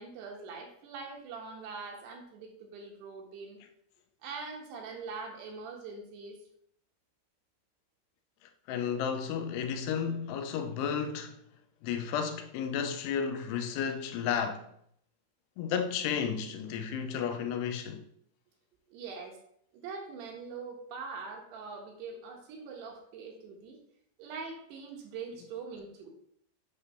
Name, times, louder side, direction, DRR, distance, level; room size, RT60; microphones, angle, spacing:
voice 1, 0.0-3.6 4.2-6.4 18.9-19.4 19.7-23.8 24.2-26.1, right 4 dB, 80° right, 3.4 m, -43 dB
voice 2, 8.7-11.4 11.8-14.6 15.6-18.1, left 7 dB, 85° left, 2.8 m, -32 dB
8.4 x 3.4 x 5.6 m
omnidirectional pair, 4.7 m